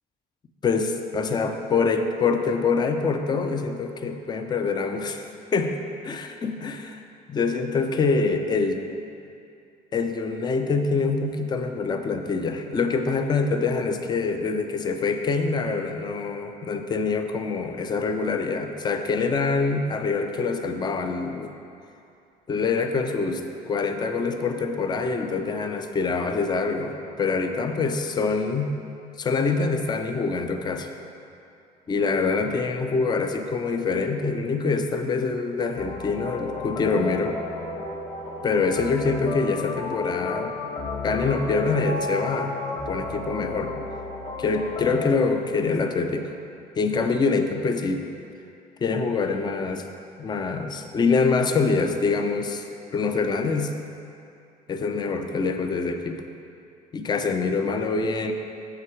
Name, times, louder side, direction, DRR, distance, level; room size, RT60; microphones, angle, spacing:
voice 1, 0.6-5.3 5.5-5.8 6.0-7.0 7.3-8.8 9.9-21.5 22.5-28.7 29.2-30.9 31.9-37.4 38.4-40.5 41.0-43.7 44.4-46.3 46.8-48.0 48.8-49.9 50.2-52.6 52.9-53.8 54.7-56.2 56.9-58.3, left 4 dB, 25° left, 6 dB, 0.4 m, -25 dB
sound 1, 35.8-45.1, left 3 dB, 50° left, 1.0 m, -32 dB
6.8 x 5.7 x 4.8 m, 2.6 s
cardioid pair, 110°, 17 cm